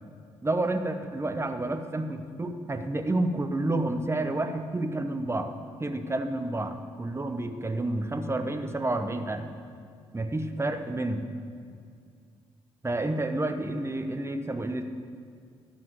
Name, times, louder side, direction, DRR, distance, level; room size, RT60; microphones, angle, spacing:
voice 1, 0.4-5.5 5.8-9.5 10.1-11.3 12.8-14.8, right 2 dB, 20° right, 7 dB, 1.0 m, -30 dB
12.0 x 5.8 x 7.6 m, 2.2 s
hypercardioid pair, 40°, 14 cm